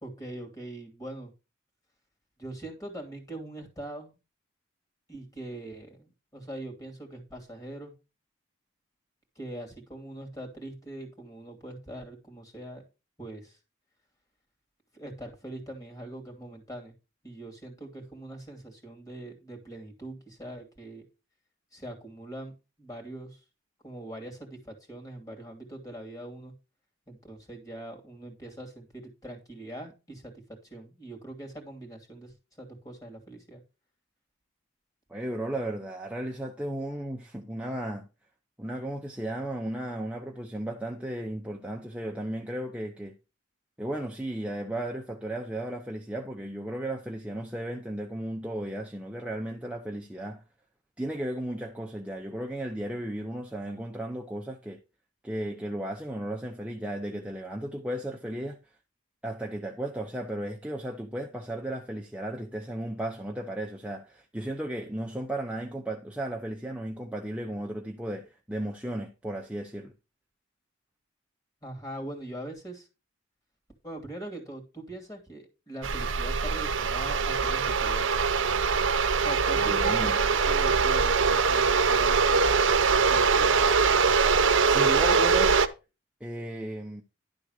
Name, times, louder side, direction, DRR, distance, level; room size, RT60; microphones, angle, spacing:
voice 1, 0.0-1.3 2.4-4.2 5.1-7.9 9.4-12.8 13.2-13.6 14.9-16.9 17.2-21.0 21.7-23.4 23.8-26.5 27.1-30.3 30.6-33.6 71.6-72.9 73.8-78.2 79.2-82.6 83.1-83.6, right 1 dB, 15° left, 2.6 m, -42 dB
voice 2, 35.1-38.1 38.6-43.1 43.8-50.4 51.0-54.8 55.2-58.6 59.2-69.9 79.6-80.2 84.7-85.6 86.2-87.0, right 1 dB, 5° right, 0.7 m, -35 dB
sound 1, 75.8-85.7, right 5 dB, 65° right, 0.8 m, -23 dB
11.5 x 3.9 x 6.5 m
head